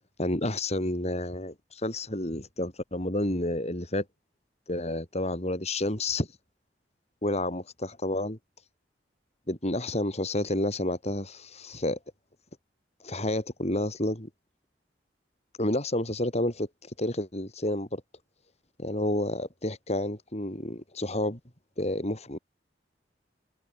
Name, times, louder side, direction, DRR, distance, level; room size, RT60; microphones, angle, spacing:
voice 1, 0.2-4.0 4.7-6.3 7.2-8.4 9.5-12.0 13.0-14.3 15.6-18.0 18.8-21.4 21.8-22.4, left 1 dB, 40° left, 7.6 m, -30 dB
head